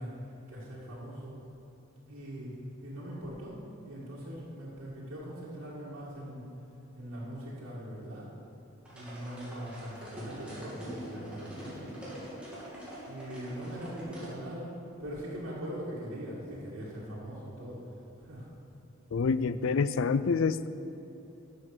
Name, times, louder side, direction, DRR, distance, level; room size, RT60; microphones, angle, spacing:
voice 1, 0.0-1.4 2.1-3.6 3.8-6.4 6.9-8.3 8.9-12.0 13.1-14.7 15.0-18.5, equal, 90° right, -9 dB, 2.3 m, -41 dB
sound 1, 8.8-14.3, equal, 5° right, 2.6 m, -44 dB
voice 2, 19.1-20.7, left 5 dB, 70° left, 15 dB, 0.4 m, -27 dB
12.0 x 7.1 x 6.2 m, 3.0 s
head